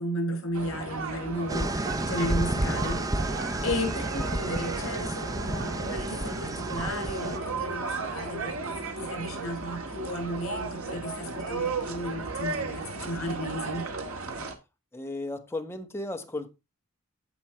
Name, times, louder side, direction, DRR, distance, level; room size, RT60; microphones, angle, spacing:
voice 1, 0.0-13.8, equal, 70° left, 5.7 m, -34 dB
sound 1, 0.5-14.5, right 3 dB, 75° right, 1.9 m, -35 dB
sound 2, 1.5-7.4, right 1 dB, 15° right, 0.6 m, -31 dB
voice 2, 14.9-16.5, left 2 dB, 10° left, 1.4 m, -34 dB
15.5 x 5.4 x 3.2 m
head